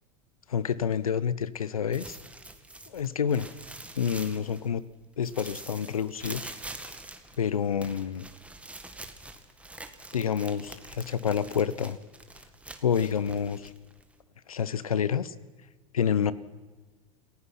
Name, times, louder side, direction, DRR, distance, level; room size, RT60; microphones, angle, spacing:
voice 1, 0.5-2.2 2.9-3.5 4.0-4.8 5.2-6.5 7.4-8.3 10.1-12.0 12.8-13.7 14.5-15.3 15.9-16.3, left 7 dB, 85° left, 18 dB, 0.9 m, -28 dB
sound 1, 1.9-4.9 5.2-14.2, right 2 dB, 5° right, 1.9 m, -45 dB
28.0 x 16.0 x 5.9 m, 1.3 s
hypercardioid pair, 90°, 18 cm